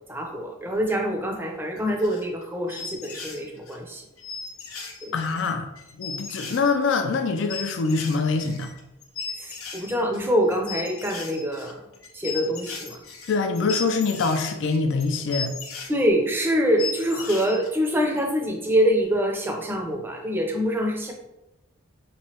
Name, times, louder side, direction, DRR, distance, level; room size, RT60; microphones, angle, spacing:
voice 1, 0.1-4.0 5.0-5.2 9.4-11.8 12.1-13.0 15.9-21.1, equal, 10° right, 1 dB, 0.5 m, -25 dB
sound 1, 1.8-2.4 2.7-3.8 4.2-15.9 16.4-16.5 16.8-17.7, left 5 dB, 85° left, 0.7 m, -36 dB
voice 2, 5.1-5.7 6.0-8.7 13.3-15.5, left 4 dB, 60° left, 6 dB, 0.4 m, -24 dB
4.4 x 3.1 x 2.8 m, 0.93 s
head